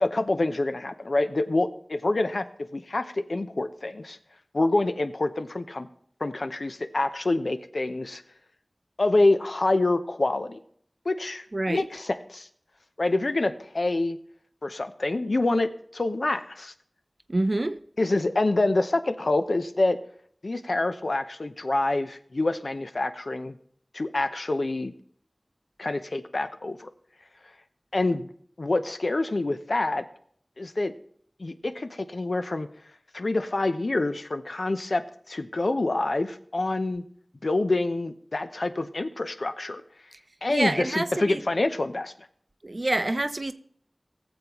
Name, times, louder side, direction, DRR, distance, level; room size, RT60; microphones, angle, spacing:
voice 1, 0.0-2.5 2.7-4.2 4.5-5.9 6.2-8.2 9.0-10.6 11.1-12.5 13.0-14.2 14.6-16.7 18.0-20.0 20.4-23.6 23.9-24.9 25.8-26.9 27.9-28.3 28.6-30.0 30.6-30.9 31.4-32.7 33.1-35.0 35.3-37.0 37.4-39.8 40.4-42.1, left 2 dB, 75° left, 0.6 m, -26 dB
voice 2, 11.5-11.8 17.3-17.8 40.1-40.2 40.5-41.4 42.6-43.5, right 2 dB, 50° right, 0.5 m, -27 dB
19.0 x 7.1 x 3.0 m
wide cardioid pair, 45°, 0 cm